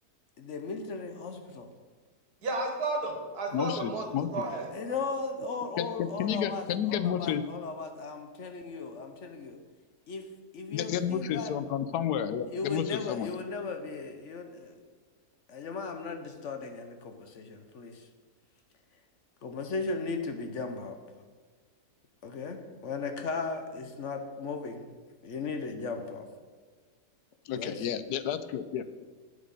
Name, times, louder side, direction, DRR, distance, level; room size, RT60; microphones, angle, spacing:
voice 1, 0.4-1.7 4.7-9.6 10.1-10.3 10.5-11.5 12.5-14.7 15.5-18.0 19.4-21.0 22.2-24.9 25.2-26.2 27.5-27.8, left 4 dB, 55° left, 6 dB, 1.0 m, -37 dB
voice 2, 2.4-4.1 4.3-4.9, right 2 dB, 80° right, 2 dB, 2.1 m, -33 dB
voice 3, 3.5-4.4 5.8-7.4 10.7-13.3 27.5-29.0, left 9 dB, 80° left, 12 dB, 1.1 m, -31 dB
8.1 x 7.9 x 5.4 m, 1.5 s
omnidirectional pair, 1.7 m